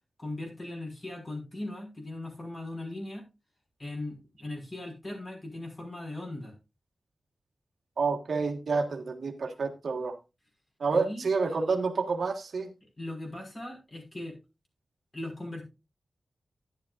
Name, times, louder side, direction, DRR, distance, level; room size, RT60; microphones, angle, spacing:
voice 1, 0.2-3.2 3.8-6.5 10.9-11.3 13.0-14.4 15.1-15.7, left 2 dB, 40° left, 0 dB, 5.6 m, -39 dB
voice 2, 8.0-10.1 10.8-12.7, right 4 dB, 85° right, 3 dB, 1.6 m, -29 dB
11.5 x 11.5 x 2.6 m, 0.26 s
wide cardioid pair, 95°, 0 cm